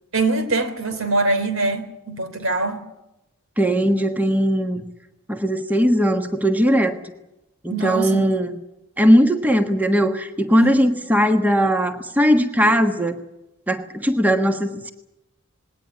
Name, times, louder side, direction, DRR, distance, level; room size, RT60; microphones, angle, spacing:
voice 1, 0.1-2.8 7.7-8.3 10.6-10.9, right 3 dB, 75° right, 9 dB, 3.2 m, -23 dB
voice 2, 3.6-4.8 5.3-6.9 7.6-8.6 9.0-13.2 13.7-14.9, equal, 10° right, 6 dB, 1.4 m, -19 dB
20.0 x 18.0 x 9.7 m, 0.93 s
head